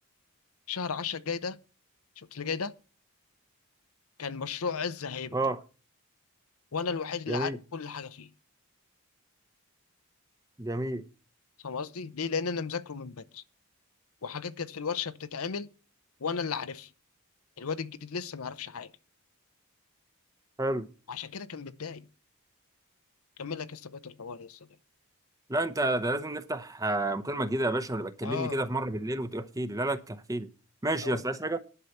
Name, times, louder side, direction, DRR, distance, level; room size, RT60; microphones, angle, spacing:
voice 1, 0.7-1.6 2.3-2.7 4.2-5.4 6.7-8.3 11.6-13.4 14.2-15.7 16.2-16.9 17.6-18.9 21.1-22.1 23.4-24.6 28.2-28.6 31.0-31.2, left 5 dB, 75° left, 0.7 m, -34 dB
voice 2, 7.3-7.6 10.6-11.0 20.6-20.9 25.5-30.5 30.8-31.6, right 1 dB, 15° right, 0.8 m, -30 dB
11.0 x 5.7 x 7.9 m
head